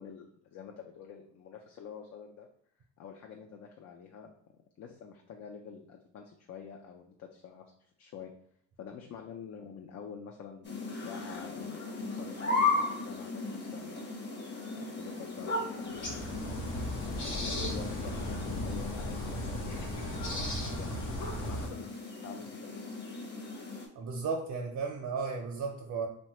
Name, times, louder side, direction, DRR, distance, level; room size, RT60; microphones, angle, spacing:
voice 1, 0.0-2.5 3.0-4.3 4.8-8.3 8.8-14.0 15.0-16.7 17.2-21.9 22.2-22.5, left 7 dB, 60° left, 2 dB, 0.4 m, -47 dB
sound 1, 10.6-23.9, left 3 dB, 35° left, 0.7 m, -36 dB
sound 2, 15.9-21.7, equal, 90° left, 0.8 m, -36 dB
voice 2, 24.0-26.1, right 4 dB, 60° right, 1 dB, 0.5 m, -34 dB
3.1 x 2.2 x 2.8 m, 0.65 s
cardioid pair, 90°, 30 cm